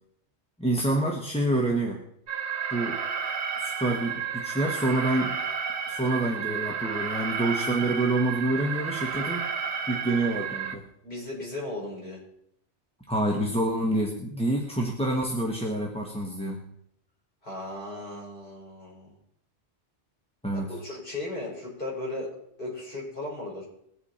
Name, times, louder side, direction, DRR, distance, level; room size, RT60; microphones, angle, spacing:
voice 1, 0.6-2.1 2.7-3.0 3.6-5.4 5.9-9.5 9.9-10.9 13.1-16.6 20.4-20.7, right 1 dB, 5° left, 0 dB, 1.3 m, -27 dB
Alarm, 2.3-10.8, right 6 dB, 70° right, 1.4 m, -32 dB
voice 2, 11.0-12.2 17.4-19.1 20.7-22.3 22.6-23.6, left 2 dB, 50° left, -4 dB, 6.0 m, -36 dB
21.0 x 8.3 x 4.3 m, 0.72 s
omnidirectional pair, 1.2 m